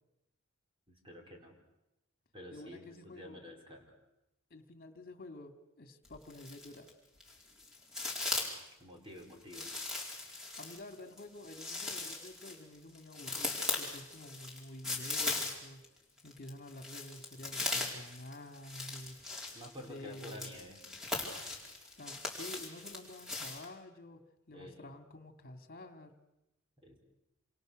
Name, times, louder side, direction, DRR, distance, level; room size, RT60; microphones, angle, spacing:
voice 1, 0.9-1.6 2.3-3.9 8.8-9.7 19.5-20.9 24.5-24.9 26.8-27.0, left 1 dB, 25° right, 2 dB, 4.7 m, -50 dB
voice 2, 2.5-3.4 4.5-6.9 10.2-10.3 10.6-15.8 16.2-19.2 19.9-20.5 22.0-24.2 24.5-26.1, left 1 dB, 45° left, 7 dB, 2.5 m, -49 dB
sound 1, 6.0-6.9 7.2-8.7 9.5-15.9 16.2-23.6, left 3 dB, ahead, 4.5 m, -39 dB
28.0 x 27.0 x 6.5 m, 0.92 s
head